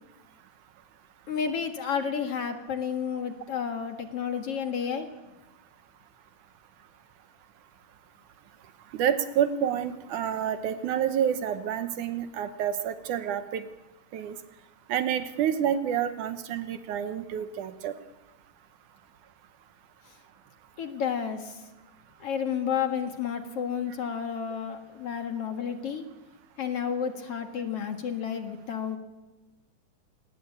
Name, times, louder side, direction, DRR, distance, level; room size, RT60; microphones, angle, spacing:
voice 1, 1.3-5.1 20.8-21.6 22.2-26.0 26.6-29.0, left 7 dB, 50° left, 6 dB, 2.5 m, -31 dB
voice 2, 8.9-13.7 14.1-14.4 14.9-17.9, right 9 dB, 70° right, 10 dB, 2.4 m, -28 dB
27.5 x 20.5 x 8.5 m, 1.1 s
omnidirectional pair, 3.8 m